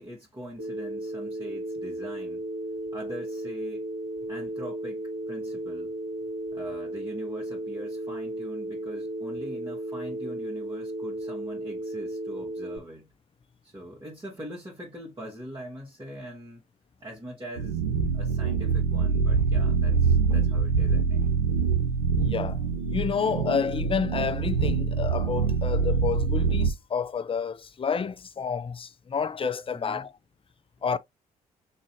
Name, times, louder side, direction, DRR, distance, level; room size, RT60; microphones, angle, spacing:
voice 1, 0.0-2.5 2.9-3.9 4.3-5.9 6.5-13.1 13.6-16.6 17.0-17.8 18.1-21.3 29.7-30.1, right 1 dB, 25° right, 2.1 m, -42 dB
Telephone, 0.6-12.8, right 1 dB, 50° right, 1.8 m, -34 dB
sound 1, 17.6-26.7, right 5 dB, 85° right, 0.6 m, -25 dB
voice 2, 22.2-22.6 22.9-30.1 30.8-31.0, left 6 dB, 30° left, 0.6 m, -29 dB
6.2 x 2.7 x 2.9 m
figure-of-eight pair, 45°, 19 cm